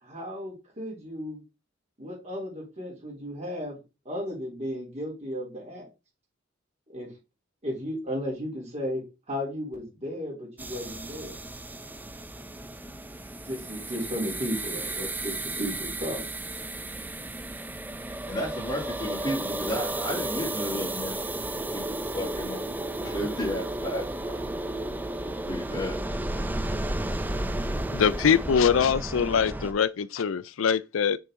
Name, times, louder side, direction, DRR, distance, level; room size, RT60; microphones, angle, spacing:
voice 1, 0.0-1.4 2.0-3.8 4.0-5.9 6.9-7.1 7.6-11.3 13.4-16.2, equal, 35° right, 3.5 m, -34 dB
sound 1, 10.6-29.7, right 1 dB, 10° right, 0.5 m, -33 dB
voice 2, 18.1-24.5 25.2-26.7, equal, 20° left, 2.6 m, -34 dB
voice 3, 27.9-31.2, left 7 dB, 75° left, 0.4 m, -23 dB
6.5 x 5.7 x 3.7 m
head